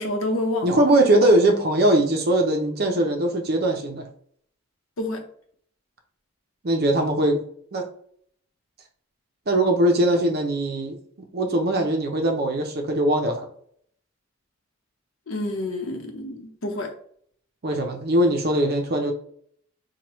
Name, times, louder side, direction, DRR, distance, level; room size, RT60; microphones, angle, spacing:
voice 1, 0.0-1.0 5.0-5.2 15.3-16.9, left 1 dB, 75° left, 4 dB, 0.8 m, -28 dB
voice 2, 0.6-4.1 6.6-7.4 7.7-7.8 9.5-11.0 11.3-13.4 17.6-19.1, right 1 dB, 50° right, 3 dB, 0.6 m, -21 dB
4.6 x 2.2 x 3.0 m, 0.62 s
head